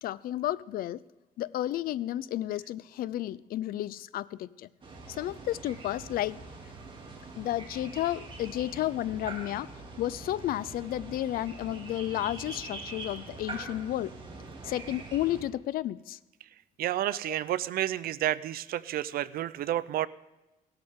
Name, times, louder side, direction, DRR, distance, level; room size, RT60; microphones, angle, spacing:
voice 1, 0.0-1.0 1.4-4.7 5.1-6.4 7.4-9.7 10.0-14.2 14.6-16.2 17.3-17.4, left 13 dB, 75° left, 19 dB, 0.4 m, -32 dB
sound 1, 4.8-15.4, right 3 dB, 35° right, 2.6 m, -44 dB
voice 2, 16.8-20.1, right 13 dB, 80° right, 17 dB, 0.5 m, -30 dB
17.5 x 13.0 x 3.6 m, 1.0 s
cardioid pair, 130°, 15 cm